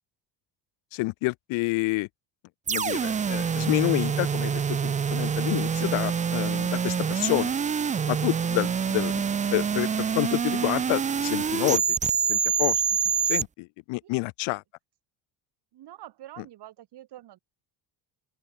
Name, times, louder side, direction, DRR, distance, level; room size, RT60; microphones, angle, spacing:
voice 1, 0.9-2.1 2.7-7.5 8.1-9.2 9.5-11.8 12.3-12.8 13.2-14.6, left 25 dB, 90° left, 0.9 m, -28 dB
sound 1, 2.7-13.4, right 6 dB, 15° right, 0.4 m, -26 dB
voice 2, 15.7-17.4, right 13 dB, 60° right, 6.9 m, -46 dB
open air
cardioid pair, 140°, 46 cm